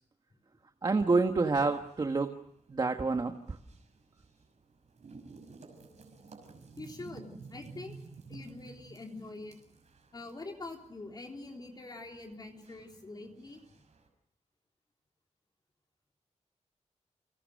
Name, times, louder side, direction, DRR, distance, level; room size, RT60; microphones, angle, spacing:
voice 1, 0.8-2.3 2.7-3.6, right 3 dB, 35° right, 5 dB, 1.4 m, -28 dB
sound 1, 0.8-14.1, right 4 dB, 70° right, 6.0 m, -54 dB
voice 2, 6.8-8.0 8.3-9.6 10.1-13.6, left 2 dB, 35° left, 1 dB, 3.6 m, -45 dB
29.5 x 25.5 x 6.4 m, 0.72 s
wide cardioid pair, 175°, 12 cm